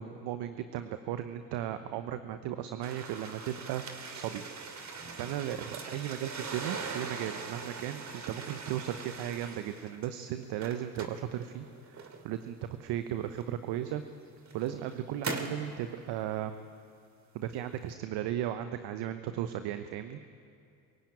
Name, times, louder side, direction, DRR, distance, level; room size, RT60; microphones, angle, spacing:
voice 1, 0.0-3.8 4.1-4.4 5.2-14.0 14.5-16.5 17.3-20.2, right 11 dB, 55° right, 10 dB, 1.1 m, -36 dB
sound 1, 2.8-10.1 10.4-12.4 13.4-13.5 14.2-15.7, right 4 dB, 35° right, 2.7 m, -41 dB
23.5 x 16.0 x 8.8 m, 2.4 s
hypercardioid pair, 65°, 48 cm